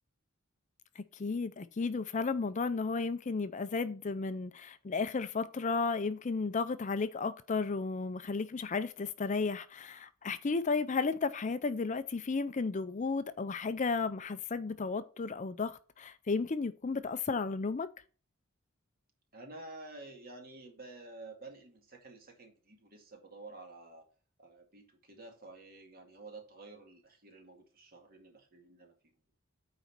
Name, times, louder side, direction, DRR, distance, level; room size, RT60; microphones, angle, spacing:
voice 1, 1.0-17.9, left 4 dB, 35° left, 0.5 m, -33 dB
voice 2, 19.3-24.1 24.4-28.9, right 2 dB, 45° right, 2.1 m, -51 dB
9.1 x 4.1 x 5.9 m
head